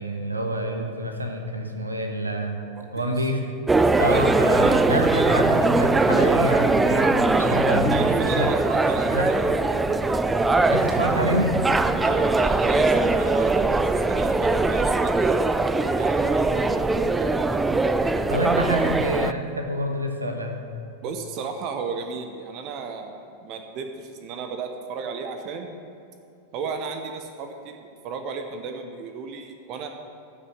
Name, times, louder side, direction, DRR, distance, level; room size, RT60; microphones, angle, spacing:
voice 1, 0.0-2.6 2.9-3.4 4.0-8.5 9.1-9.3 10.7-11.6 18.3-20.6, equal, 80° right, 3 dB, 1.3 m, -27 dB
sound 1, 3.7-19.3, right 3 dB, 10° right, 0.4 m, -21 dB
voice 2, 7.9-9.9 12.0-15.6 16.0-17.6 21.0-25.8 26.5-29.9, right 5 dB, 40° right, 6 dB, 0.9 m, -34 dB
13.5 x 6.4 x 7.3 m, 2.5 s
figure-of-eight pair, 90°, 0 cm